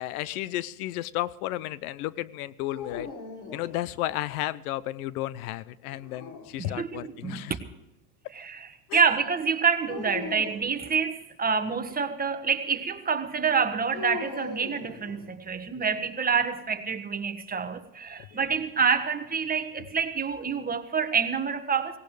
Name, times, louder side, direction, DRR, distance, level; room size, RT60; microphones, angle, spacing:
voice 1, 0.0-3.1 3.5-7.6 8.9-9.0 15.7-15.8, left 15 dB, 70° left, 19 dB, 0.8 m, -33 dB
sound 1, 2.7-4.3 5.9-7.0 9.9-10.7 13.9-15.6, left 5 dB, 40° left, 3.2 m, -40 dB
voice 2, 6.6-7.6 8.3-22.0, right 6 dB, 20° right, 7 dB, 1.5 m, -27 dB
18.0 x 17.5 x 3.4 m, 0.94 s
hypercardioid pair, 100°, 45 cm